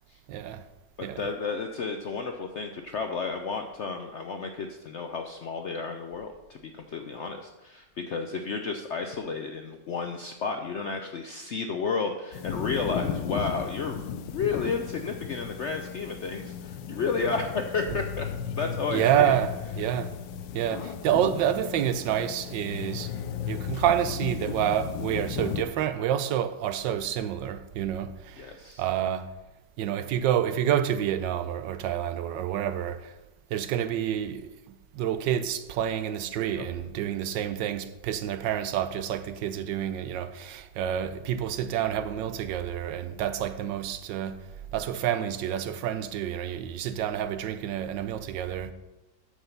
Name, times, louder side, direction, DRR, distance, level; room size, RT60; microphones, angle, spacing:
voice 1, 0.3-0.6 1.0-1.2 18.9-20.1 20.5-23.1 23.5-28.5 28.8-29.3 29.8-33.1 33.5-34.5 34.9-44.4 44.7-48.7, right 10 dB, 85° right, 1.3 m, -28 dB
voice 2, 1.2-14.0 14.3-18.3 18.6-19.4 28.4-28.8 36.5-36.6, left 5 dB, 70° left, 0.6 m, -32 dB
sound 1, 12.3-25.6, left 8 dB, 85° left, 1.3 m, -35 dB
7.2 x 6.5 x 6.9 m
omnidirectional pair, 1.9 m